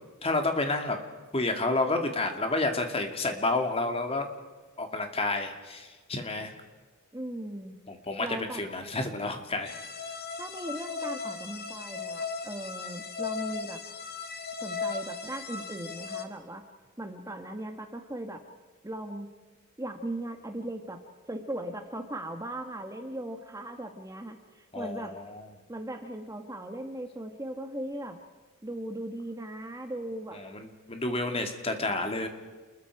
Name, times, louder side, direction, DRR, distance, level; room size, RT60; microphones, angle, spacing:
voice 1, 0.2-1.0 1.3-4.3 4.8-6.5 7.9-9.7 24.7-25.5 30.3-32.3, left 2 dB, 25° left, 5 dB, 2.4 m, -30 dB
voice 2, 7.1-7.8 8.2-8.6 10.4-13.8 14.6-16.7 17.0-18.4 18.8-19.3 19.8-21.0 21.3-25.2 25.7-28.2 28.6-30.4, right 1 dB, 15° right, 5 dB, 1.4 m, -38 dB
sound 1, 9.6-16.2, left 5 dB, 45° left, 1.9 m, -37 dB
29.0 x 21.5 x 4.8 m, 1.3 s
head